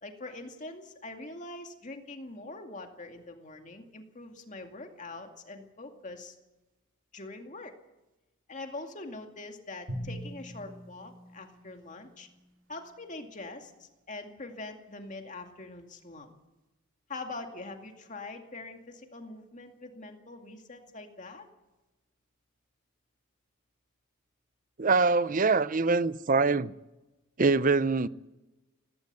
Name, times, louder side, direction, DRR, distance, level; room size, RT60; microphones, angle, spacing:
voice 1, 0.0-6.4 7.1-7.7 8.5-12.3 12.7-16.3 17.1-21.5, left 2 dB, 35° left, 2.3 m, -43 dB
Drum, 9.9-12.3, equal, 65° right, 3.5 m, -42 dB
voice 2, 24.8-26.7 27.4-28.1, right 4 dB, 40° right, 0.6 m, -24 dB
18.5 x 17.0 x 8.3 m
head